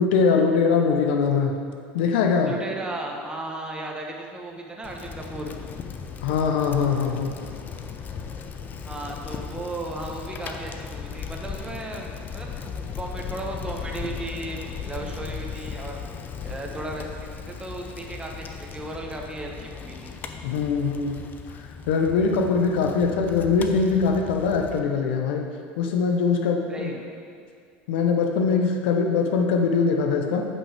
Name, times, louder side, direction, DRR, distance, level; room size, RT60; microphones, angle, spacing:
voice 1, 0.0-1.5 1.9-2.5 6.2-7.4 20.4-21.1 21.9-25.5 25.8-26.9 27.9-30.5, left 5 dB, 75° left, 3 dB, 0.7 m, -22 dB
voice 2, 2.4-5.5 8.8-16.0 16.4-20.1 26.7-27.0, right 2 dB, 15° right, 0 dB, 1.1 m, -35 dB
Bicycle, 4.8-24.8, left 6 dB, 35° left, 0.5 m, -37 dB
8.5 x 5.4 x 3.4 m, 2.2 s
supercardioid pair, 100°, 6 cm